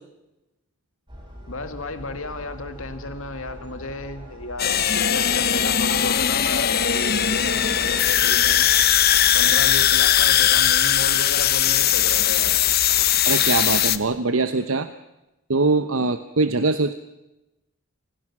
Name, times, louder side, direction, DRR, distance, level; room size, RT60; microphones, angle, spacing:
sound 1, 1.1-14.0, equal, 25° right, 4.3 m, -40 dB
voice 1, 1.5-8.7 9.3-12.5, left 2 dB, 70° left, 8 dB, 2.2 m, -33 dB
sound 2, 4.6-14.0, left 10 dB, 45° left, 0.9 m, -19 dB
voice 2, 13.2-14.9 15.5-16.9, right 3 dB, 70° right, 10 dB, 1.0 m, -22 dB
27.5 x 18.5 x 6.1 m, 0.97 s
head